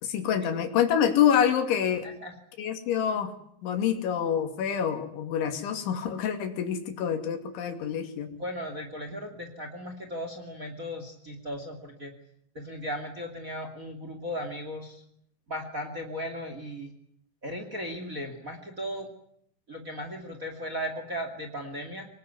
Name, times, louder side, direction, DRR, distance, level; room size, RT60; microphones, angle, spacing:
voice 1, 0.0-2.1 2.6-3.3 3.6-8.3, left 8 dB, 90° left, 6 dB, 4.9 m, -26 dB
voice 2, 2.0-2.3 8.3-12.1 12.5-15.0 15.5-16.9 17.4-19.1 19.7-22.1, equal, 25° right, 5 dB, 2.2 m, -36 dB
25.5 x 20.5 x 9.6 m, 0.73 s
omnidirectional pair, 5.2 m